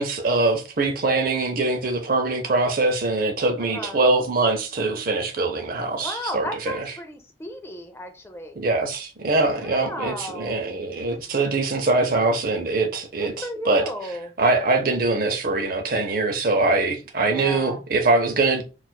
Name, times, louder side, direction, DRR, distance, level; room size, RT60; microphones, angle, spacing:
voice 1, 0.0-6.9 8.6-13.8 14.4-18.6, right 3 dB, 50° right, 0.6 m, -23 dB
voice 2, 3.6-4.0 5.9-8.6 9.6-10.6 13.2-14.3 17.2-17.8, left 1 dB, 15° left, 0.4 m, -34 dB
4.3 x 2.4 x 2.2 m
head